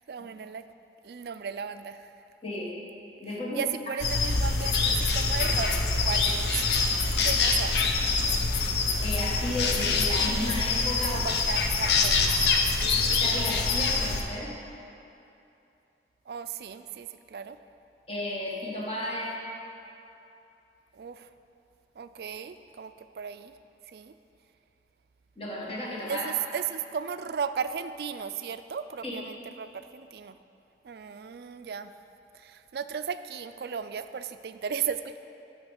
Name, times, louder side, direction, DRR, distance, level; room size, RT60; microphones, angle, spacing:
voice 1, 0.1-0.6 1.0-2.1 3.5-5.7 6.0-6.6 7.2-7.8 11.0-12.3 16.3-17.6 20.9-21.3 22.0-23.5 23.9-24.1 26.1-30.4 30.8-31.9 32.3-35.2, right 7 dB, 60° right, 11 dB, 0.3 m, -35 dB
voice 2, 2.4-2.8 3.2-3.7 9.0-11.6 13.2-14.5 18.1-19.4 25.4-26.3 29.0-29.1, left 1 dB, 30° left, -4 dB, 1.4 m, -33 dB
sound 1, 4.0-14.2, left 4 dB, 70° left, 0.7 m, -25 dB
8.8 x 5.1 x 7.1 m, 2.7 s
head